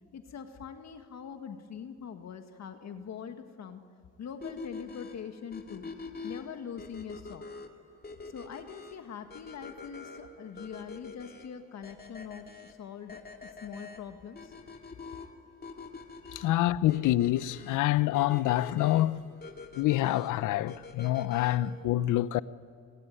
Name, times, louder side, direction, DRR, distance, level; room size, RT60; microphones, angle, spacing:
voice 1, 0.1-3.8 4.2-5.9 6.2-7.4 8.2-14.5, left 7 dB, 60° left, 1.8 m, -43 dB
sound 1, 4.4-21.8, left 4 dB, 30° left, 2.3 m, -46 dB
voice 2, 16.3-19.2 19.7-22.4, left 15 dB, 85° left, 0.8 m, -26 dB
25.5 x 20.0 x 9.2 m
cardioid pair, 90°, 30 cm